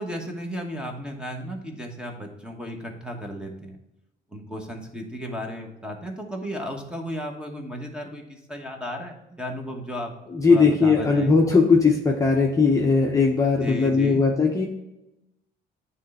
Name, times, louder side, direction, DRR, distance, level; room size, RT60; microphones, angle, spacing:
voice 1, 0.0-3.8 4.3-10.2 10.5-11.3 13.6-14.2, equal, 5° right, 2 dB, 1.0 m, -34 dB
voice 2, 10.3-14.7, left 4 dB, 15° left, -1 dB, 0.7 m, -19 dB
9.3 x 3.2 x 4.1 m, 0.91 s
cardioid pair, 140°, 19 cm